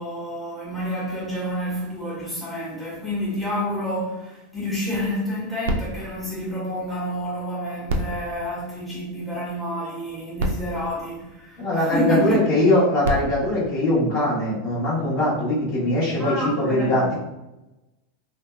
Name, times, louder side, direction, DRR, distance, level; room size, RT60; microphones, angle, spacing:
voice 1, 0.0-12.6 16.2-17.1, equal, 5° left, -7 dB, 1.2 m, -29 dB
sound 1, 5.6-7.3 7.8-9.4 10.1-10.2 10.4-11.9 12.8-14.6 15.3-15.4, right 1 dB, 75° right, 0.4 m, -32 dB
voice 2, 11.6-17.1, left 1 dB, 55° left, -7 dB, 1.4 m, -21 dB
2.7 x 2.6 x 2.3 m, 0.98 s
hypercardioid pair, 100°, 0 cm